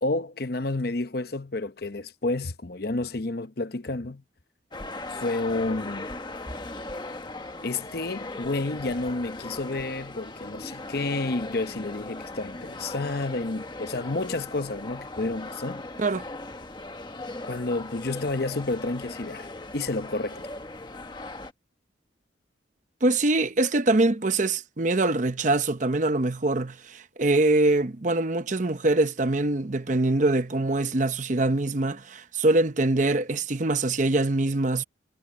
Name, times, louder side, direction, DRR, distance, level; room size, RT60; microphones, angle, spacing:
voice 1, 0.0-4.2 5.2-6.1 7.6-15.9 17.5-19.5 19.7-20.5, left 2 dB, 55° left, 0.9 m, -30 dB
sound 1, 4.7-21.5, left 2 dB, 25° left, 1.2 m, -39 dB
voice 2, 23.0-34.8, right 2 dB, 40° right, 0.8 m, -24 dB
head